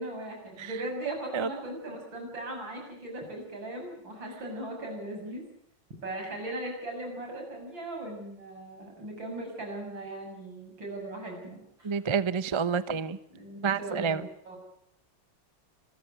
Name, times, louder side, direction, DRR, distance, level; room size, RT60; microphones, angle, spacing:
voice 1, 0.0-5.4 6.0-12.0 13.3-14.6, right 1 dB, 70° right, 2 dB, 8.1 m, -38 dB
voice 2, 1.1-1.5 11.8-13.2 13.6-14.2, right 6 dB, 40° right, 14 dB, 0.4 m, -29 dB
26.5 x 15.0 x 9.4 m, 0.73 s
omnidirectional pair, 2.2 m